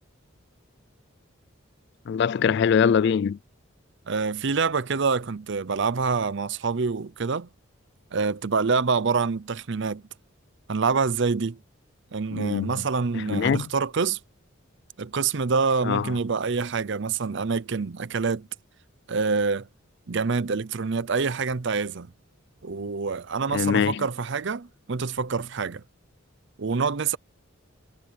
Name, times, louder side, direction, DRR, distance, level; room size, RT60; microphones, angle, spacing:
voice 1, 2.1-3.4 12.3-12.7 13.1-13.7 15.8-16.2 23.5-24.1, left 7 dB, 55° left, 0.3 m, -23 dB
voice 2, 4.1-7.5 8.1-10.0 10.7-11.6 12.1-14.2 15.0-18.5 19.1-19.7 20.1-22.1 22.6-25.8 26.6-27.2, right 5 dB, 60° right, 0.6 m, -26 dB
head